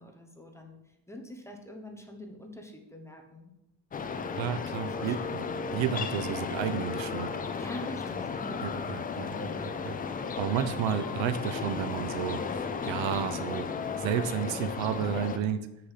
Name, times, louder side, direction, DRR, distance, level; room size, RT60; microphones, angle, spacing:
voice 1, 0.0-3.5 4.1-5.9 7.6-8.8 9.3-9.6, left 1 dB, 5° left, 2 dB, 1.0 m, -46 dB
sound 1, 3.9-15.4, left 5 dB, 20° left, 0.3 m, -34 dB
voice 2, 4.4-5.5 5.7-7.3 8.6-9.4 9.6-9.9 10.4-13.7 14.0-15.7, right 9 dB, 70° right, 12 dB, 0.8 m, -32 dB
7.9 x 6.7 x 5.7 m, 0.89 s
cardioid pair, 170°, 48 cm